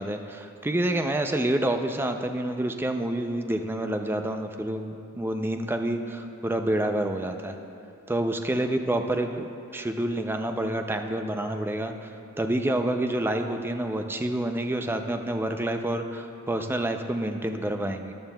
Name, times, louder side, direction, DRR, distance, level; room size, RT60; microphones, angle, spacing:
voice 1, 0.0-7.5 8.1-18.1, right 1 dB, 10° right, 6 dB, 0.4 m, -28 dB
14.0 x 10.5 x 2.2 m, 2.6 s
head